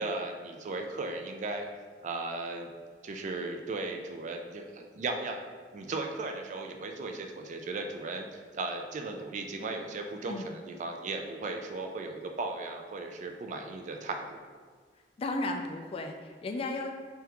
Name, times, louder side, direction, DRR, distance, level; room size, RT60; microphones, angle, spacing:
voice 1, 0.0-1.6 2.0-2.7 3.0-8.3 8.5-14.4, right 3 dB, 45° right, 4 dB, 0.3 m, -36 dB
voice 2, 15.2-16.9, left 2 dB, 35° left, 4 dB, 0.3 m, -34 dB
3.5 x 3.4 x 2.9 m, 1.5 s
head